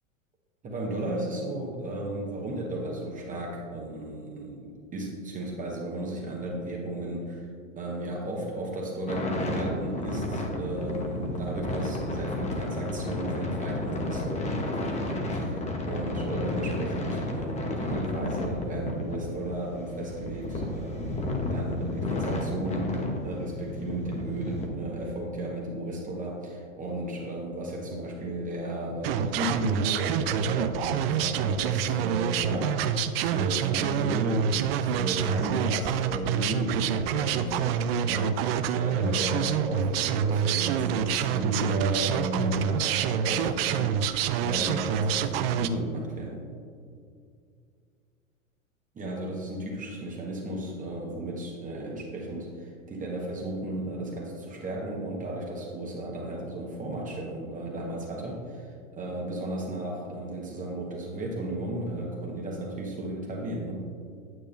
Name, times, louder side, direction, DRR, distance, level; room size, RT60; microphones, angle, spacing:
voice 1, 0.6-7.5 7.8-15.6 15.9-46.4 48.9-63.8, right 1 dB, 20° right, -2 dB, 1.1 m, -34 dB
sound 1, 9.1-24.7, left 2 dB, 15° left, 0.9 m, -32 dB
sound 2, 29.0-45.7, right 8 dB, 45° right, 0.5 m, -27 dB
9.0 x 8.0 x 2.6 m, 2.3 s
hypercardioid pair, 105°, 41 cm